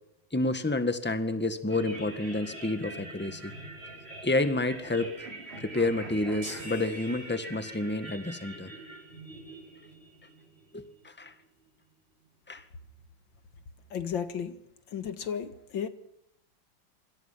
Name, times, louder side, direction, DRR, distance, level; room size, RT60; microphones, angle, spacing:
voice 1, 0.3-3.5 4.2-5.3 5.6-8.7 10.7-11.3 12.5-12.6, left 2 dB, 5° left, 1.7 m, -29 dB
sound 1, 1.7-11.1, right 2 dB, 30° right, 6.9 m, -44 dB
sound 2, 6.4-8.0, right 2 dB, 60° right, 6.6 m, -47 dB
voice 2, 13.9-14.6 14.9-15.9, left 7 dB, 85° left, 2.4 m, -34 dB
26.5 x 26.0 x 5.8 m
omnidirectional pair, 2.0 m